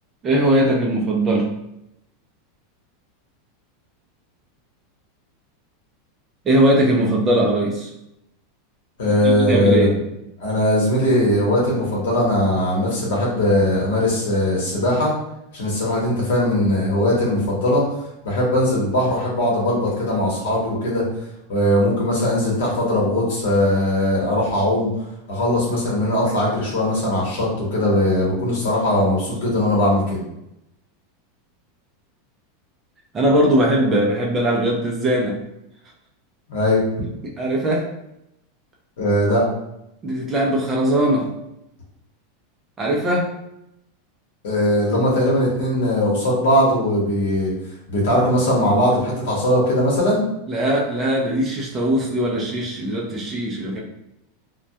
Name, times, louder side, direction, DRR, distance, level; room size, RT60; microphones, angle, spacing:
voice 1, 0.2-1.5 6.4-7.9 9.1-10.0 33.1-35.4 37.4-37.9 40.0-41.3 42.8-43.3 50.5-53.8, right 1 dB, 15° right, -2 dB, 0.3 m, -20 dB
voice 2, 9.0-9.9 10.4-15.1 15.5-17.8 18.2-21.1 21.5-24.9 25.3-30.2 36.5-36.8 39.0-39.5 44.4-47.5 47.9-50.2, left 1 dB, 80° left, -4 dB, 0.9 m, -19 dB
2.2 x 2.1 x 2.7 m, 0.83 s
supercardioid pair, 170°, 0 cm